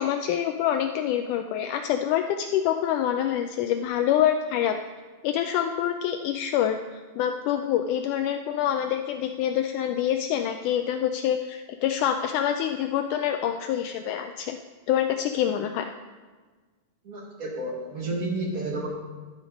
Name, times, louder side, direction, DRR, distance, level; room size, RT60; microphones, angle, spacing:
voice 1, 0.0-4.8 5.2-14.6 14.9-15.8, left 10 dB, 85° left, 6 dB, 1.8 m, -26 dB
voice 2, 17.0-18.9, right 2 dB, 55° right, -1 dB, 0.9 m, -31 dB
12.5 x 8.2 x 5.2 m, 1.4 s
omnidirectional pair, 4.2 m